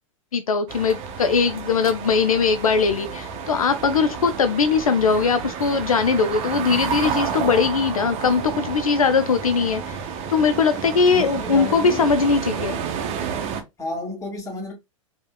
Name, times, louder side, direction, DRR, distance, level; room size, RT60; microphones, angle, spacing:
voice 1, 0.3-10.0 10.3-12.8, left 5 dB, 80° left, 0.6 m, -20 dB
sound 1, 0.7-13.6, right 7 dB, 35° right, 0.8 m, -30 dB
voice 2, 11.1-12.1 13.8-14.7, left 2 dB, 20° left, 2.3 m, -31 dB
4.8 x 2.9 x 2.2 m
hypercardioid pair, 100°, 18 cm